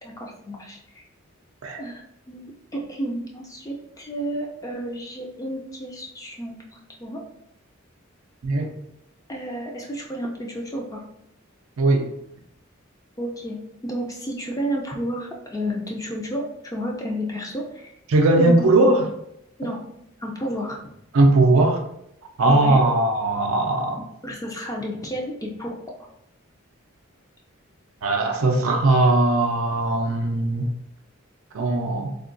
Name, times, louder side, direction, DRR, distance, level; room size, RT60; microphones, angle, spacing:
voice 1, 0.0-1.1 1.8-2.0 2.3-7.2 9.3-11.1 13.2-17.9 18.4-18.7 19.6-19.8 20.2-20.8 22.5-22.8 24.2-26.1, equal, 15° left, -1 dB, 0.4 m, -31 dB
voice 2, 11.8-12.1 18.1-19.1 21.1-21.8 22.4-24.0 28.0-30.7 31.5-32.1, right 2 dB, 75° right, 2 dB, 0.4 m, -19 dB
3.5 x 2.2 x 2.5 m, 0.78 s
head